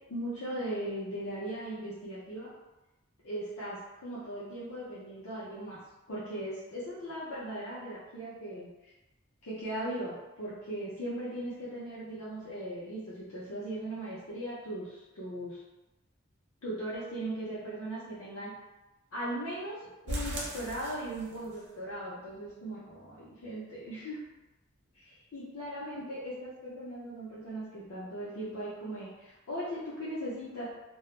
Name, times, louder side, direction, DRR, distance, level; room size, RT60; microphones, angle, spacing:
voice 1, 0.1-2.5 3.2-5.8 6.1-8.9 9.4-15.6 16.6-18.5 19.1-24.2 25.3-30.7, right 1 dB, 90° left, -9 dB, 0.6 m, -38 dB
sound 1, 20.1-21.6 21.9-22.0 22.4-22.5 22.9-23.0, right 1 dB, 55° right, 0.7 m, -38 dB
2.2 x 2.0 x 3.0 m, 1.0 s
head